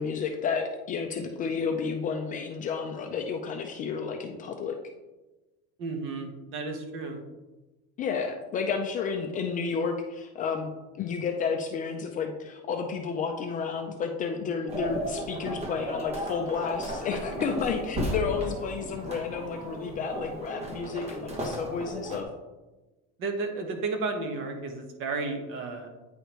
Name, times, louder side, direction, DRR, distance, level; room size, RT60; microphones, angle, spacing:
voice 1, 0.0-4.7 8.0-10.7 11.0-22.3, left 5 dB, 25° left, 3 dB, 0.4 m, -31 dB
voice 2, 5.8-7.2 23.2-25.9, right 3 dB, 40° right, 4 dB, 1.1 m, -33 dB
sound 1, 14.7-22.2, equal, 20° right, 0.9 m, -35 dB
9.0 x 5.0 x 3.0 m, 1.1 s
cardioid pair, 165°, 31 cm